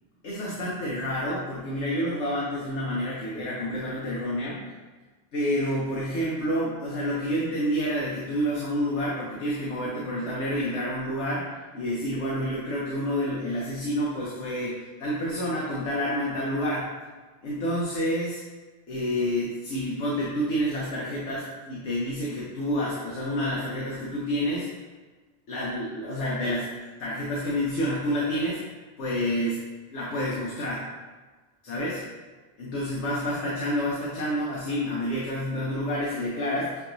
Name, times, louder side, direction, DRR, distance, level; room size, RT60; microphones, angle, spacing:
voice 1, 0.2-4.7 5.3-16.9 17.4-18.4 18.9-24.7 25.5-26.7 27.0-28.6 29.0-29.6 29.9-30.8 31.6-32.0 32.6-36.7, equal, 80° left, -6 dB, 1.1 m, -28 dB
6.8 x 2.9 x 2.6 m, 1.3 s
omnidirectional pair, 1.2 m